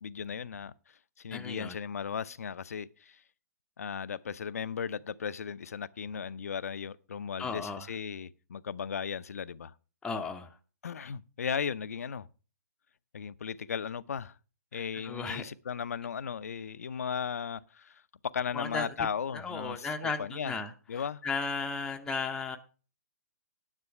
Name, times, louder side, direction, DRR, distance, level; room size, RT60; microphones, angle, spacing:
voice 1, 0.0-3.2 3.8-9.7 10.8-12.3 13.1-14.4 14.7-20.6 20.9-21.2, left 7 dB, 60° left, 0.6 m, -36 dB
voice 2, 1.3-1.8 7.4-7.9 10.0-10.5 14.7-15.4 18.5-18.9 19.3-20.7 21.2-22.6, left 4 dB, 5° left, 0.6 m, -35 dB
9.9 x 7.6 x 5.7 m
figure-of-eight pair, 125°, 9 cm